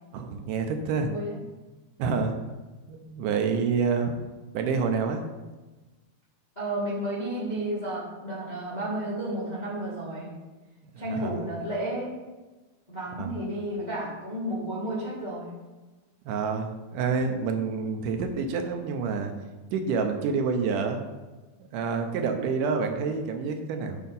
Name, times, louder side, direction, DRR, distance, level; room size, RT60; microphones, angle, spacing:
voice 1, 0.1-1.1 2.0-2.4 2.9-4.1 4.5-5.2 10.9-11.3 13.2-13.3 16.3-19.3 19.7-21.0 21.7-24.0, right 5 dB, 85° right, 5 dB, 2.3 m, -28 dB
voice 2, 1.0-1.4 6.5-10.3 11.0-12.2 12.9-15.5, right 1 dB, 20° left, -8 dB, 1.1 m, -32 dB
7.4 x 4.5 x 5.3 m, 1.2 s
omnidirectional pair, 3.6 m